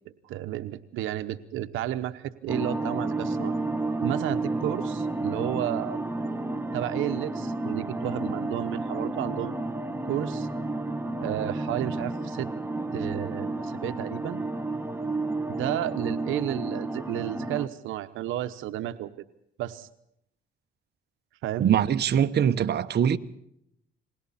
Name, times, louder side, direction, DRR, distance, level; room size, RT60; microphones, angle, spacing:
voice 1, 0.2-3.6 4.0-6.0 6.7-9.6 10.1-10.5 11.2-12.5 12.9-14.4 15.5-19.1 19.6-19.9 21.4-21.7, right 13 dB, 90° right, 1.0 m, -32 dB
sound 1, 2.5-17.7, right 2 dB, 10° right, 1.4 m, -31 dB
voice 2, 21.6-23.2, right 9 dB, 55° right, 1.1 m, -22 dB
29.0 x 21.0 x 4.2 m
cardioid pair, 90°, 20 cm